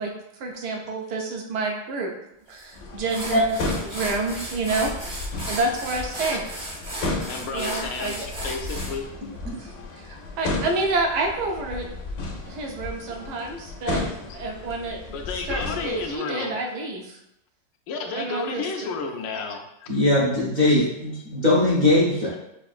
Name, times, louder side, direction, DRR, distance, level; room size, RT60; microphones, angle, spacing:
voice 1, 0.0-2.1 2.5-3.6 3.8-6.4 7.5-8.3 9.5-11.9 12.5-14.0 14.3-15.0 15.4-17.2 18.1-18.9, right 3 dB, 70° right, 2 dB, 1.1 m, -29 dB
sound 1, 2.6-2.7 3.1-8.9, right 1 dB, 25° right, 0.7 m, -35 dB
sound 2, 2.7-16.2, left 2 dB, 65° left, 1.1 m, -34 dB
voice 2, 7.3-9.1 15.1-16.5 17.9-19.9, left 4 dB, 80° left, 3 dB, 1.3 m, -31 dB
voice 3, 19.9-22.3, left 1 dB, 55° right, -6 dB, 0.5 m, -20 dB
5.8 x 2.5 x 2.4 m, 0.84 s
omnidirectional pair, 2.0 m